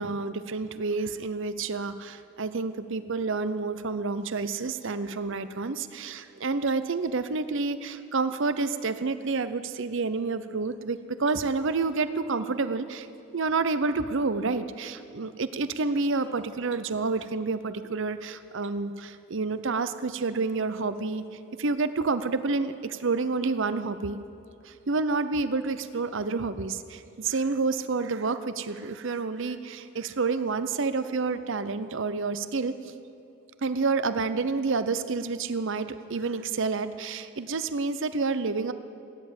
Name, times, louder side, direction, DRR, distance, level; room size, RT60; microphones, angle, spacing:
voice 1, 0.0-13.1 13.3-21.2 21.6-24.2 24.6-32.9 33.6-38.7, right 4 dB, 60° right, 12 dB, 0.7 m, -29 dB
17.0 x 10.0 x 8.2 m, 2.7 s
head